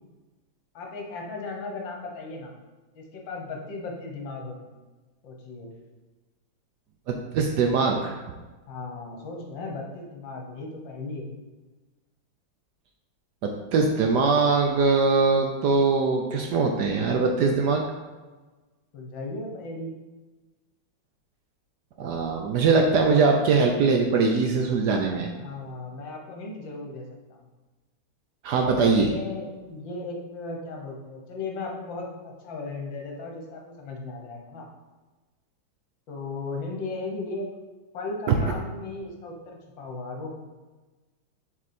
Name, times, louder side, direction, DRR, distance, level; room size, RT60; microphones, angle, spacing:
voice 1, 0.7-2.5 3.0-4.8 5.2-5.7 8.7-11.3 18.9-20.0 25.4-27.1 27.3-27.5 29.0-34.7 36.1-37.5 37.9-40.4, left 3 dB, 70° left, 1 dB, 1.8 m, -36 dB
voice 2, 7.1-8.1 13.4-17.8 22.0-25.3 28.4-29.1, right 4 dB, 70° right, 3 dB, 1.0 m, -22 dB
7.1 x 4.5 x 4.2 m, 1.2 s
omnidirectional pair, 2.2 m